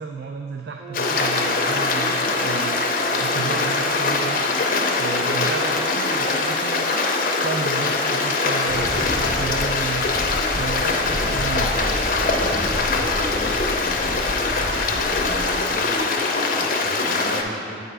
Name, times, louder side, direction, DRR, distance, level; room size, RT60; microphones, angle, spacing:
voice 1, 0.0-2.8 3.2-4.5 4.9-6.9 7.4-10.1 10.6-11.7, right 5 dB, 65° right, 3 dB, 0.3 m, -32 dB
Brass instrument, 0.8-9.5, right 4 dB, 80° right, 0.8 m, -36 dB
Stream, 0.9-17.4, left 3 dB, 50° left, 0.5 m, -22 dB
Wind, 8.6-15.8, equal, 15° right, 0.8 m, -32 dB
voice 2, 11.0-14.3 14.9-16.1 16.5-17.8, equal, 40° right, -9 dB, 1.1 m, -36 dB
7.9 x 4.9 x 3.3 m, 2.4 s
head